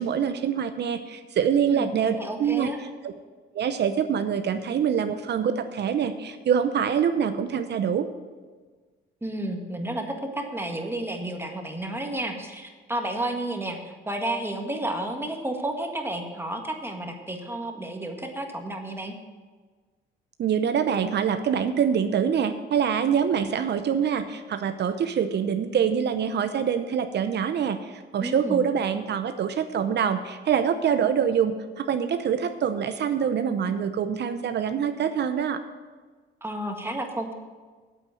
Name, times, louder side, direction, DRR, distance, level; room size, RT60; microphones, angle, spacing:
voice 1, 0.0-2.7 3.0-3.1 3.5-8.1 20.4-35.6, right 7 dB, 60° right, 9 dB, 0.7 m, -25 dB
voice 2, 2.2-2.8 9.2-19.1 28.2-28.6 36.4-37.3, right 1 dB, 10° right, 3 dB, 1.6 m, -31 dB
8.6 x 8.3 x 7.7 m, 1.4 s
cardioid pair, 90°, 20 cm